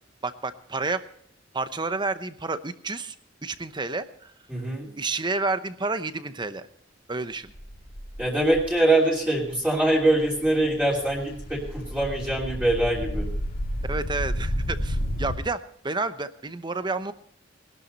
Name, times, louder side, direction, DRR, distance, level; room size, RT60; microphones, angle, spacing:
voice 1, 0.2-1.0 1.5-3.1 3.4-4.3 5.0-6.7 7.1-7.5 13.9-17.1, right 3 dB, 25° right, 12 dB, 0.9 m, -30 dB
voice 2, 4.5-4.9 8.2-13.3, right 1 dB, 5° right, -4 dB, 3.1 m, -23 dB
sound 1, 7.5-8.7 9.3-9.5 9.8-15.3, equal, 50° left, 2.5 m, -31 dB
20.5 x 12.0 x 4.1 m, 0.65 s
head